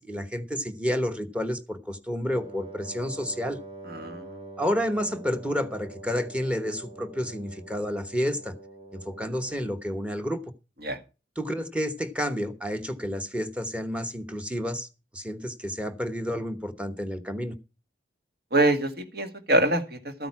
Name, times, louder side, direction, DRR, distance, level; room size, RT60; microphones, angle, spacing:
voice 1, 0.0-3.6 4.6-8.5 8.9-10.4 11.4-14.9 15.1-17.5, equal, 5° right, 9 dB, 1.0 m, -30 dB
Wind instrument woodwind instrument, 2.3-9.9, right 2 dB, 30° right, 1.2 m, -45 dB
voice 2, 3.8-4.5 10.8-11.0 18.5-20.3, right 1 dB, 60° right, 7 dB, 1.8 m, -25 dB
13.5 x 9.0 x 4.7 m, 0.32 s
head